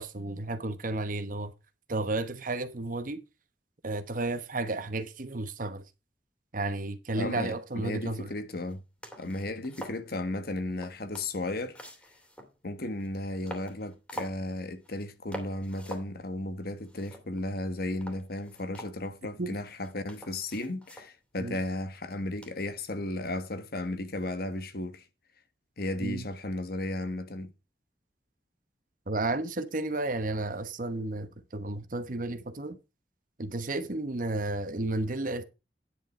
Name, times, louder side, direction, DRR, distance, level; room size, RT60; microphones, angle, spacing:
voice 1, 0.0-1.5 1.9-3.2 3.8-5.8 6.5-8.3 19.4-19.5 21.4-21.6 26.0-26.3 29.1-32.8 33.4-35.4, right 2 dB, 50° right, 1.0 m, -32 dB
voice 2, 7.2-8.8 9.2-11.8 12.6-25.0 25.8-27.5, left 1 dB, 60° left, 1.4 m, -34 dB
sound 1, 8.7-8.8 9.0-10.1 10.7-12.6 13.0-13.1 13.5-14.4 14.8-15.1 15.3-16.1 16.5-16.6 16.8-17.6 18.0-19.4 19.8-21.1 22.4-22.8, equal, 5° left, 2.6 m, -45 dB
10.0 x 6.9 x 4.3 m
head